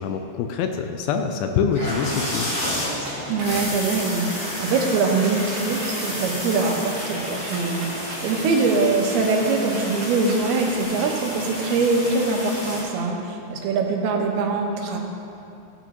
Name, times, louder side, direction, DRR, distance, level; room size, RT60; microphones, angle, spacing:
voice 1, 0.0-2.6, left 6 dB, 80° left, 5 dB, 2.2 m, -25 dB
sound 1, 1.7-12.8, equal, 20° left, 1.5 m, -31 dB
sound 2, 3.0-3.6 4.0-4.4 4.7-4.8 5.1-5.9 6.4-8.2 8.6-10.4 10.8-10.9, right 3 dB, 65° right, 3.0 m, -42 dB
voice 2, 3.3-15.0, right 3 dB, 85° right, 1 dB, 3.0 m, -23 dB
16.0 x 8.0 x 3.0 m, 2.6 s
omnidirectional pair, 4.4 m